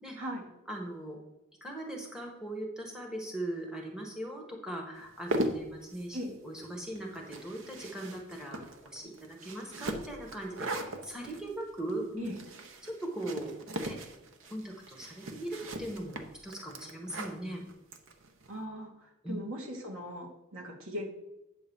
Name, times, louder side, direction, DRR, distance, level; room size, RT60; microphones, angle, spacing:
voice 1, 0.7-1.2 1.6-12.3 12.8-13.6 13.8-14.0 14.5-17.6 19.2-19.4, right 1 dB, 5° right, -1 dB, 1.3 m, -39 dB
sound 1, 5.0-18.5, right 1 dB, 60° right, 0.9 m, -40 dB
voice 2, 18.5-21.1, equal, 80° right, 0 dB, 2.1 m, -39 dB
8.8 x 3.9 x 7.0 m, 0.96 s
head